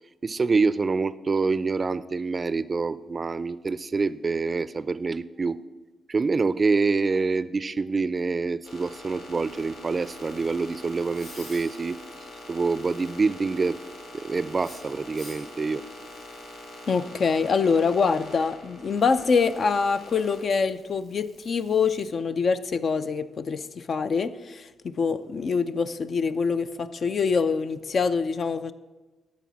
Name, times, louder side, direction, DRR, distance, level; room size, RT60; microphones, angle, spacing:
voice 1, 0.2-5.6 6.1-12.0 12.5-13.8 14.1-15.8, right 4 dB, 40° right, 16 dB, 0.4 m, -26 dB
sound 1, 8.6-22.1, left 1 dB, 85° left, 2.9 m, -44 dB
voice 2, 16.9-28.7, left 5 dB, 55° left, 11 dB, 0.5 m, -25 dB
12.5 x 4.2 x 6.1 m, 1.2 s
supercardioid pair, 50°, 0 cm